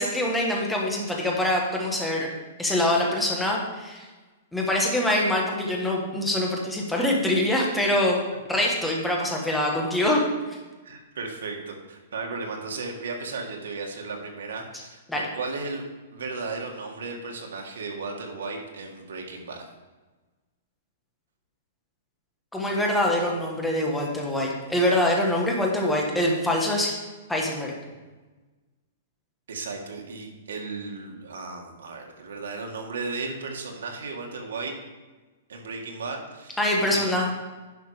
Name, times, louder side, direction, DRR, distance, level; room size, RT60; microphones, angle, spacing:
voice 1, 0.0-2.3 2.6-4.1 4.5-8.2 8.5-10.2 15.1-15.2 22.5-27.0 27.3-27.7 36.6-37.4, left 1 dB, 5° left, -2 dB, 1.3 m, -24 dB
voice 2, 10.8-15.8 16.1-19.7 27.9-28.0 29.5-34.8 35.5-36.6 36.9-37.2, right 3 dB, 90° right, 1 dB, 1.9 m, -35 dB
10.5 x 5.5 x 4.9 m, 1.2 s
hypercardioid pair, 170°, 0 cm